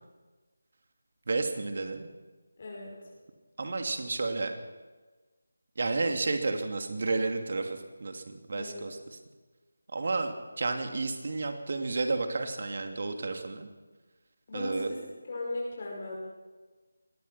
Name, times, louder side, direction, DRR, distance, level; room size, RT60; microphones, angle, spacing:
voice 1, 1.3-2.1 3.6-4.5 5.8-9.2 9.9-13.7 14.5-14.9, right 3 dB, 50° right, 5 dB, 2.7 m, -31 dB
voice 2, 2.6-2.9 8.5-8.9 14.5-15.0 15.3-16.2, left 2 dB, 40° left, -2 dB, 5.2 m, -37 dB
24.0 x 19.0 x 5.8 m, 1.3 s
figure-of-eight pair, 160°, 0 cm